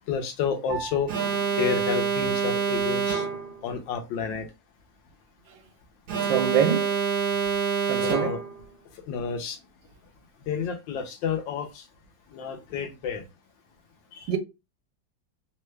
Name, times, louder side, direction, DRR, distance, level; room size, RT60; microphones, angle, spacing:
voice 1, 0.1-1.1 1.6-3.2 3.6-4.5 8.0-8.4 9.1-9.6 10.5-11.8 12.3-13.2, left 7 dB, 80° left, 1.4 m, -30 dB
Piano, 0.7-10.3, right 6 dB, 10° left, 0.4 m, -47 dB
Alarm, 1.1-3.6 6.1-8.6, right 6 dB, 65° right, 1.2 m, -26 dB
voice 2, 6.2-7.0 7.9-8.3 14.3-14.4, right 8 dB, 90° right, 1.3 m, -25 dB
3.5 x 2.2 x 3.1 m
omnidirectional pair, 2.0 m